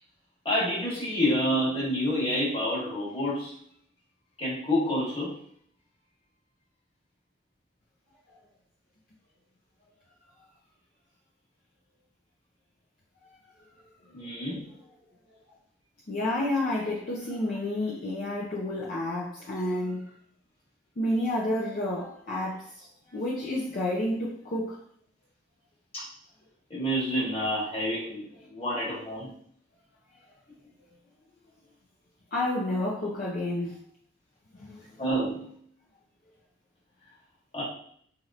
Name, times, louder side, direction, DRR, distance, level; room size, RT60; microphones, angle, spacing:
voice 1, 0.4-3.5 4.4-5.3 14.1-14.6 25.9-26.1 26.7-29.3 35.0-35.4 37.5-37.6, equal, 30° left, 1.3 m, -28 dB
voice 2, 16.1-20.1 21.0-24.8 32.3-33.8 34.5-34.9, left 1 dB, 50° left, 0.5 m, -30 dB
3.0 x 2.8 x 2.5 m
head